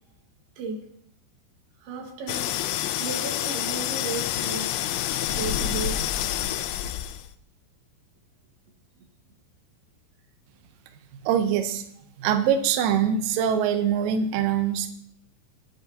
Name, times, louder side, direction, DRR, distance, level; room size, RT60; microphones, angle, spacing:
voice 1, 0.6-0.9 1.8-2.5 3.0-4.8 5.4-6.1, right 4 dB, 70° right, 2 dB, 3.4 m, -34 dB
sound 1, 2.3-7.3, left 12 dB, 85° left, 2.2 m, -28 dB
voice 2, 11.2-11.8 12.2-14.9, right 8 dB, 85° right, 7 dB, 1.9 m, -23 dB
21.5 x 7.7 x 2.8 m, 0.69 s
omnidirectional pair, 5.0 m